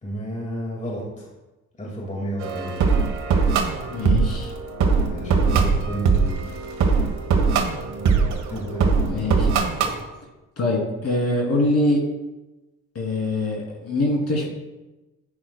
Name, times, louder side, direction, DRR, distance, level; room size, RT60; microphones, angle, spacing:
voice 1, 0.0-1.3 1.8-2.8 5.1-6.4 8.5-8.9, equal, 25° left, -2 dB, 2.1 m, -31 dB
sound 1, 2.4-10.0, right 5 dB, 70° right, 1.3 m, -21 dB
voice 2, 3.9-4.5 9.1-9.5 10.6-12.0 12.9-14.5, left 2 dB, 55° left, -2 dB, 3.1 m, -23 dB
10.5 x 9.5 x 2.3 m, 1.1 s
cardioid pair, 90°, 30 cm